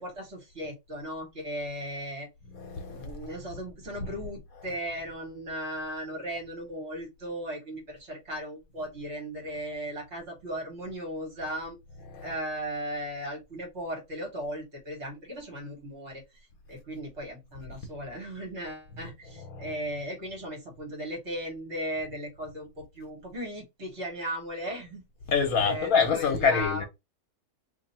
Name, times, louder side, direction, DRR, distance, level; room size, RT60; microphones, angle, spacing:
voice 1, 0.0-2.3 2.9-11.8 12.2-16.2 16.7-25.0 25.6-26.8, equal, 45° right, 1.7 m, -37 dB
voice 2, 2.5-3.3 12.1-12.3 19.0-19.1 19.4-19.7 25.3-26.8, left 6 dB, 65° left, 1.2 m, -27 dB
2.8 x 2.8 x 4.0 m
omnidirectional pair, 1.7 m